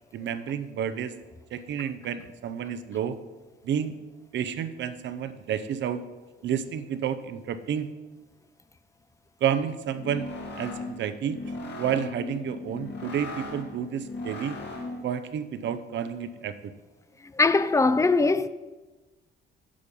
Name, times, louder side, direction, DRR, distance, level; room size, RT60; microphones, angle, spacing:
voice 1, 0.1-1.2 1.5-3.2 3.6-4.0 4.3-6.0 6.4-7.9 9.4-10.3 10.6-11.4 11.8-14.6 15.0-16.7, right 8 dB, 65° right, 0.7 m, -30 dB
sound 1, 9.9-15.2, left 2 dB, 60° left, 1.7 m, -38 dB
voice 2, 17.3-18.5, left 3 dB, 15° left, 0.4 m, -21 dB
8.5 x 5.4 x 5.3 m
cardioid pair, 90°, 20 cm